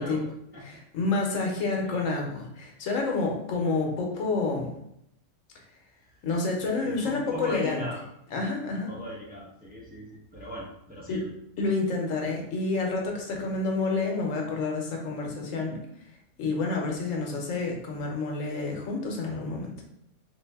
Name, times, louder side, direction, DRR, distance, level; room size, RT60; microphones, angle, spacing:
voice 1, 0.0-0.8 1.8-2.1 6.0-6.3 6.8-8.0 8.9-11.3 13.3-13.5, left 1 dB, 10° right, -5 dB, 0.6 m, -40 dB
voice 2, 0.7-4.7 6.2-7.8 8.3-8.9 11.1-11.2 11.6-15.8 16.4-19.7, left 3 dB, 90° left, 1 dB, 1.1 m, -29 dB
3.3 x 2.6 x 3.4 m, 0.77 s
omnidirectional pair, 1.3 m